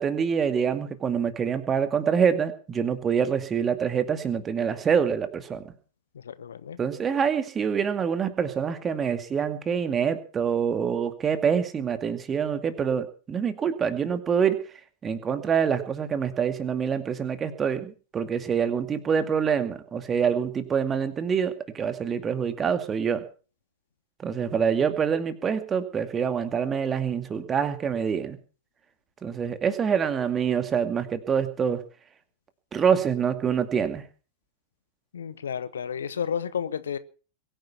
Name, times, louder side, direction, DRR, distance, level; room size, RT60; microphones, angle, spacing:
voice 1, 0.0-5.6 6.8-14.6 15.0-23.2 24.2-28.4 29.2-31.8 32.7-34.0, right 7 dB, 20° right, 2.3 m, -26 dB
voice 2, 6.2-6.8 35.1-37.0, left 7 dB, 65° left, 1.0 m, -31 dB
22.5 x 10.0 x 5.8 m
figure-of-eight pair, 90°, 0 cm